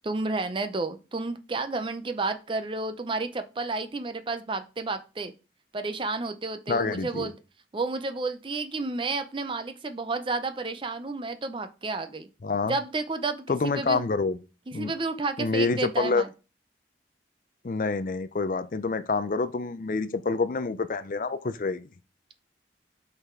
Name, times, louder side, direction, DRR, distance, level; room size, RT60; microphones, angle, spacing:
voice 1, 0.0-5.3 5.7-7.3 7.7-12.3 12.7-14.0 14.7-16.3, right 3 dB, 30° right, 0.5 m, -31 dB
voice 2, 6.7-7.3 12.4-12.7 13.5-14.4 14.7-14.9 15.4-16.2 17.6-21.9, left 4 dB, 50° left, 0.5 m, -27 dB
5.6 x 4.0 x 4.3 m
head